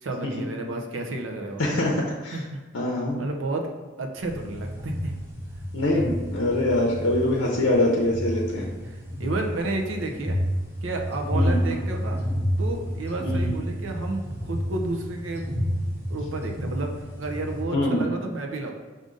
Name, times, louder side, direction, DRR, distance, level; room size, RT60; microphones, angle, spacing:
voice 1, 0.0-1.8 2.3-2.6 3.2-3.7 4.0-5.1 8.6-10.4 10.8-12.2 12.6-15.5 16.1-18.7, right 2 dB, 85° right, 3 dB, 0.6 m, -31 dB
voice 2, 1.6-1.9 2.2-2.4 2.7-3.2 5.7-8.7 11.3-11.6 13.2-13.5 17.7-18.1, left 1 dB, 85° left, -2 dB, 0.6 m, -24 dB
sound 1, 4.2-17.6, equal, 10° right, 0.9 m, -30 dB
4.9 x 2.6 x 3.8 m, 1.3 s
head